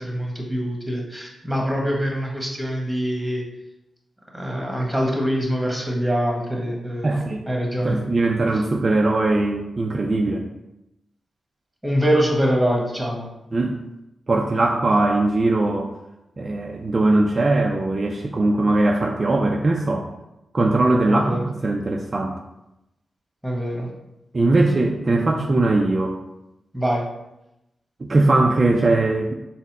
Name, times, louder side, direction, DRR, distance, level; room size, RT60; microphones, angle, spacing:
voice 1, 0.0-3.4 4.3-7.2 7.5-8.0 11.8-13.3 21.1-21.5 23.4-23.9 26.7-27.0, equal, 10° right, -1 dB, 1.2 m, -24 dB
voice 2, 7.0-7.4 7.8-10.4 13.5-13.8 14.3-15.9 16.4-20.1 20.5-22.3 24.3-26.1 28.0-29.3, right 2 dB, 45° right, 1 dB, 0.4 m, -20 dB
4.0 x 2.1 x 4.1 m, 0.90 s
supercardioid pair, 45°, 0 cm